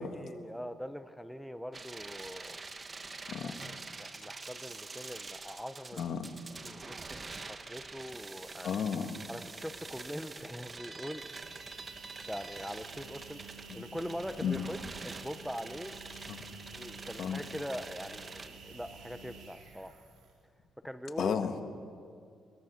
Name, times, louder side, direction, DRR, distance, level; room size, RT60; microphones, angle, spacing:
voice 1, 0.0-2.6 3.4-6.0 6.6-8.8 9.3-11.2 12.3-16.0 16.7-19.9 20.8-21.3, equal, ahead, 10 dB, 0.9 m, -42 dB
sound 1, 1.7-18.5, right 3 dB, 30° right, 1.4 m, -46 dB
voice 2, 6.0-6.3 8.6-9.1 13.7-13.8 14.4-14.6 16.3-16.4 17.2-17.4 21.2-21.6, left 7 dB, 65° left, 7 dB, 1.7 m, -33 dB
sound 2, 11.1-20.5, right 4 dB, 80° right, 4.2 m, -51 dB
22.5 x 20.0 x 6.6 m, 2.2 s
cardioid pair, 90°, 0 cm